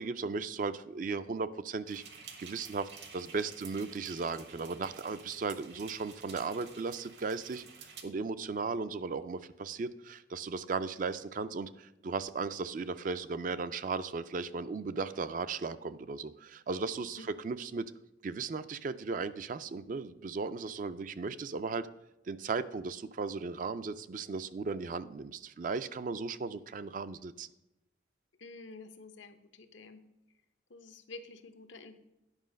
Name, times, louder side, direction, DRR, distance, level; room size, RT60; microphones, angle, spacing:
voice 1, 0.0-2.0 2.4-17.9 18.2-21.9 22.3-27.5, right 4 dB, 45° right, 13 dB, 0.4 m, -36 dB
sound 1, 1.9-8.0, right 6 dB, 65° right, 1.1 m, -51 dB
voice 2, 28.4-30.0 30.7-32.0, left 3 dB, 85° left, 8 dB, 0.8 m, -49 dB
9.8 x 5.6 x 5.1 m, 0.93 s
head